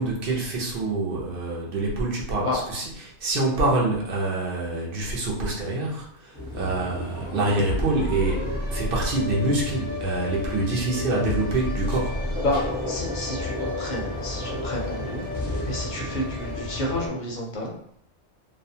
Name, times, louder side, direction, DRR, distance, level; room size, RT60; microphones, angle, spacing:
voice 1, 0.0-12.2, right 2 dB, 55° right, -3 dB, 0.8 m, -26 dB
sound 1, 6.3-17.1, left 1 dB, 10° left, 0.6 m, -31 dB
voice 2, 12.4-15.2 15.6-17.7, left 1 dB, 50° left, -2 dB, 0.6 m, -30 dB
2.4 x 2.2 x 2.7 m, 0.69 s
omnidirectional pair, 1.3 m